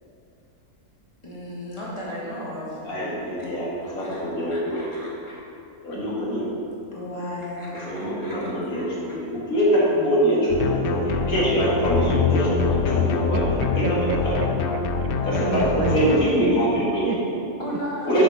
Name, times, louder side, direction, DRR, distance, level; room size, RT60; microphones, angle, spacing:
voice 1, 1.2-2.8 3.8-5.3 6.9-8.9 17.6-18.1, equal, 20° left, -7 dB, 1.8 m, -35 dB
voice 2, 2.8-3.7 3.9-4.8 5.8-6.5 7.9-12.6 12.8-13.8 14.2-14.4 15.2-17.2 18.0-18.2, equal, 65° left, -7 dB, 2.3 m, -23 dB
sound 1, 10.5-16.2, left 4 dB, 85° left, 0.5 m, -24 dB
voice 3, 13.6-14.8 15.4-17.5, right 5 dB, 85° right, 6 dB, 1.1 m, -31 dB
7.2 x 5.2 x 5.6 m, 2.8 s
omnidirectional pair, 1.6 m